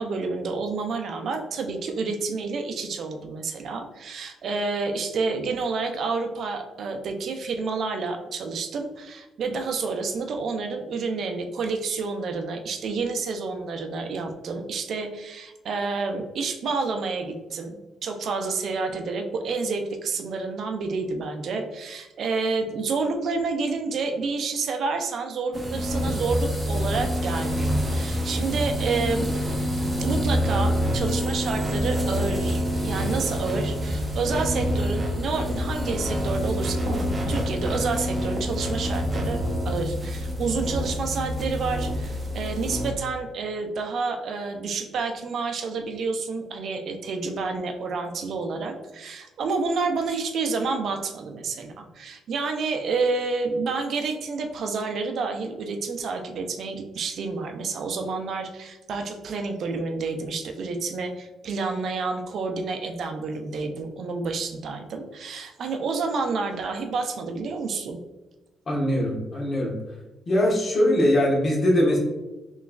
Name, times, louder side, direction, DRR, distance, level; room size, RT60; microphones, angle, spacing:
voice 1, 0.0-29.3 30.0-68.0, right 4 dB, 65° right, 5 dB, 0.4 m, -29 dB
sound 1, 25.5-42.9, equal, 20° right, 0.8 m, -27 dB
voice 2, 68.7-69.7 70.3-72.0, left 1 dB, 45° left, -2 dB, 1.1 m, -21 dB
3.5 x 3.0 x 2.3 m, 1.1 s
cardioid pair, 90°, 0 cm